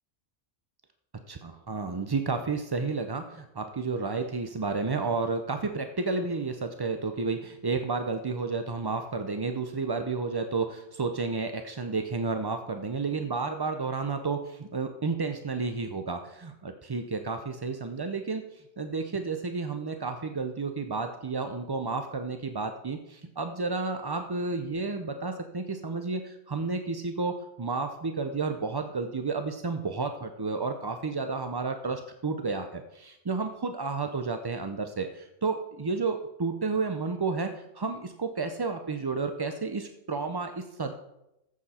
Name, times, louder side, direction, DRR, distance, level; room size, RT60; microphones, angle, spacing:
voice 1, 1.3-40.9, right 4 dB, 40° right, 7 dB, 0.3 m, -31 dB
14.5 x 7.4 x 4.2 m, 0.86 s
omnidirectional pair, 1.3 m